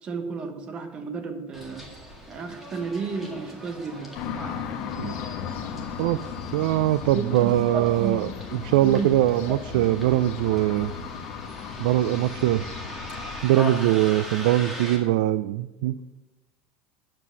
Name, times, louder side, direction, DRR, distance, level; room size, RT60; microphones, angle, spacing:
voice 1, 0.0-1.9 2.3-4.1 7.1-8.3 8.8-9.1 9.5-9.9, right 4 dB, 25° right, 7 dB, 1.2 m, -32 dB
Bus, 1.5-15.0, left 1 dB, 5° right, 1.9 m, -40 dB
sound 1, 4.1-13.4, left 7 dB, 45° left, 1.1 m, -36 dB
voice 2, 6.5-10.9 11.8-12.7 13.4-16.0, right 14 dB, 80° right, 15 dB, 0.4 m, -22 dB
9.6 x 7.5 x 6.9 m, 1.1 s
cardioid pair, 165°, 4 cm